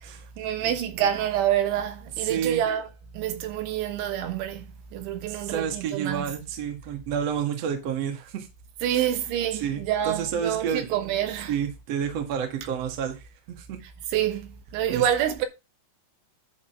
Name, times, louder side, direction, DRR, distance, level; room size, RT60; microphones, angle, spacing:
voice 1, 0.4-2.9 3.1-4.7 4.9-6.3 8.8-11.5 14.1-15.5, right 10 dB, 75° right, 3.4 m, -27 dB
voice 2, 2.2-2.6 5.3-8.5 8.9-9.0 9.6-10.9 11.5-13.2 13.5-13.8 14.9-15.0, right 8 dB, 50° right, 1.9 m, -30 dB
11.0 x 4.0 x 5.9 m
omnidirectional pair, 5.7 m